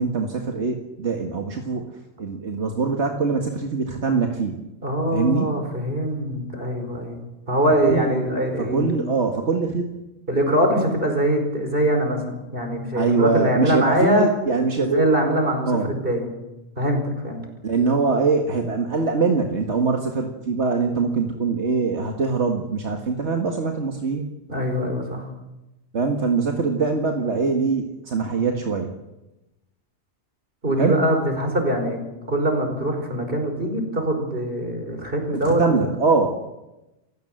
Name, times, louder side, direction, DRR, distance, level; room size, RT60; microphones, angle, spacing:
voice 1, 0.0-1.9 2.2-4.6 5.1-5.6 7.8-8.1 8.6-10.0 12.9-15.1 15.7-15.9 17.6-24.3 25.9-28.9 30.8-31.0 35.4-36.3, right 4 dB, 80° right, 3 dB, 2.1 m, -23 dB
voice 2, 4.8-9.0 10.3-14.3 14.8-16.3 16.8-17.4 24.5-25.3 30.6-32.0 32.3-35.9, right 1 dB, 55° right, 4 dB, 5.2 m, -23 dB
28.5 x 16.5 x 7.8 m, 0.98 s
omnidirectional pair, 1.1 m